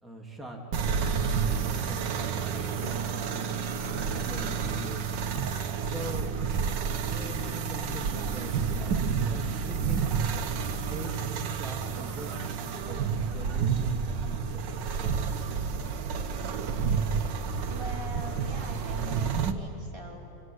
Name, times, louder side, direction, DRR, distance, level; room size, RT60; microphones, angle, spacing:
voice 1, 0.0-0.6 0.9-5.2 5.8-6.3 7.0-10.0 10.7-15.5, right 1 dB, ahead, -1 dB, 2.9 m, -43 dB
sound 1, 0.7-19.5, right 6 dB, 75° right, 1.8 m, -30 dB
voice 2, 17.7-20.2, right 1 dB, 15° right, -2 dB, 4.1 m, -43 dB
27.5 x 25.5 x 8.1 m, 2.8 s
omnidirectional pair, 2.0 m